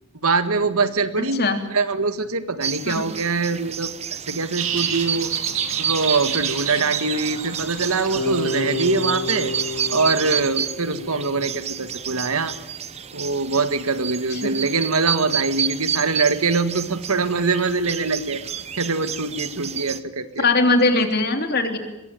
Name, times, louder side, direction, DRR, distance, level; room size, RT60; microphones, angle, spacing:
voice 1, 0.2-1.4 1.7-3.9 4.3-5.3 5.8-9.5 9.9-12.5 13.1-18.4 18.8-20.4, right 4 dB, 80° right, 10 dB, 1.8 m, -23 dB
voice 2, 1.2-1.6 2.9-3.0 14.3-14.5 20.4-21.8, left 3 dB, 45° left, 5 dB, 3.3 m, -20 dB
sound 1, 2.6-20.0, right 8 dB, 30° right, 0.9 m, -30 dB
sound 2, 4.6-10.5, right 8 dB, 65° right, 3.6 m, -30 dB
Bass guitar, 8.1-12.1, left 2 dB, 80° left, 7.9 m, -30 dB
23.0 x 22.5 x 9.2 m, 0.97 s
head